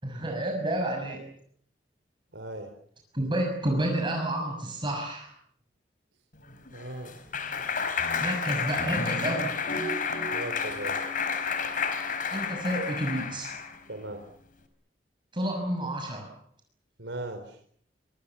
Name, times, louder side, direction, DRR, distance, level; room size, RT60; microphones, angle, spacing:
voice 1, 0.0-1.2 3.1-5.3 8.2-9.5 12.3-13.5 15.3-16.3, right 1 dB, 30° right, 1 dB, 6.5 m, -30 dB
voice 2, 2.3-2.7 6.7-7.1 7.5-7.6 10.3-11.0 13.9-14.2 17.0-17.6, right 1 dB, 90° right, 6 dB, 4.2 m, -38 dB
Clapping, 6.5-13.8, left 5 dB, 50° left, 4.9 m, -30 dB
26.5 x 26.0 x 7.2 m, 0.64 s
head